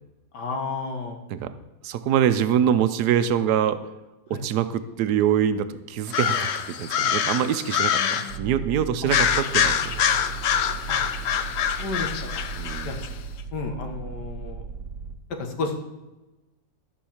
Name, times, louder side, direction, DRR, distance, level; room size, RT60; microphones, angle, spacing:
voice 1, 0.3-1.2 4.3-4.4 7.9-8.8 9.0-9.1 10.9-11.1 11.8-12.4 12.8-13.0 13.5-14.6 15.4-15.8, left 3 dB, 85° left, 4 dB, 2.1 m, -32 dB
voice 2, 1.8-3.8 4.3-10.0 12.6-12.9, right 9 dB, 75° right, 12 dB, 1.3 m, -24 dB
sound 1, 6.1-8.4 9.1-13.1, left 8 dB, 60° left, 0.7 m, -25 dB
sound 2, 8.3-15.1, right 6 dB, 50° right, 1.3 m, -36 dB
13.0 x 5.4 x 7.2 m, 1.1 s
omnidirectional pair, 1.7 m